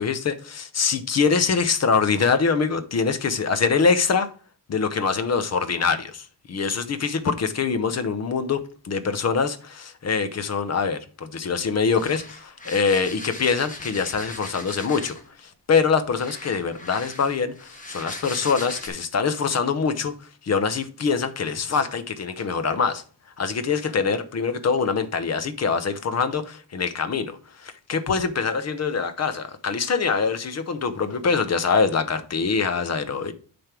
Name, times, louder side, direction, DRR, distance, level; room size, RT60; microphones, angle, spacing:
voice 1, 0.0-4.3 4.7-20.1 20.4-23.0 23.4-33.3, left 5 dB, 45° left, 0.8 m, -24 dB
sound 1, 11.8-15.3 16.1-18.9, left 2 dB, 20° left, 1.4 m, -39 dB
9.4 x 3.5 x 5.9 m
wide cardioid pair, 180°, 37 cm